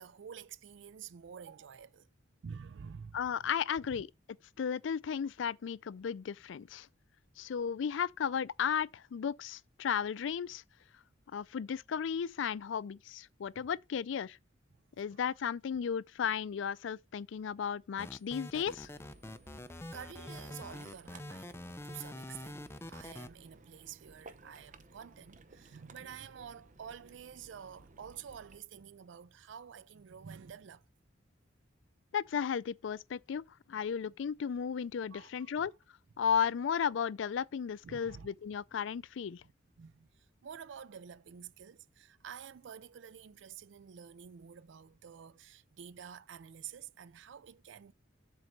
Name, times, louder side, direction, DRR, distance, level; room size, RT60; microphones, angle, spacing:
voice 1, 0.0-2.1 2.4-3.5 3.9-4.0 13.5-13.7 15.1-15.3 19.9-21.6 21.8-30.8 35.1-35.7 37.8-38.6 39.4-39.5 39.8-47.9, right 7 dB, 65° right, 0.4 m, -49 dB
voice 2, 3.1-4.1 4.6-6.9 7.4-10.6 11.3-14.4 15.0-18.9 32.1-35.7 36.2-39.4, left 7 dB, 70° left, 0.4 m, -34 dB
sound 1, 18.0-23.3, left 1 dB, 15° left, 0.5 m, -45 dB
Ocean, 18.5-28.6, right 3 dB, 40° right, 0.8 m, -58 dB
7.5 x 3.9 x 6.5 m
head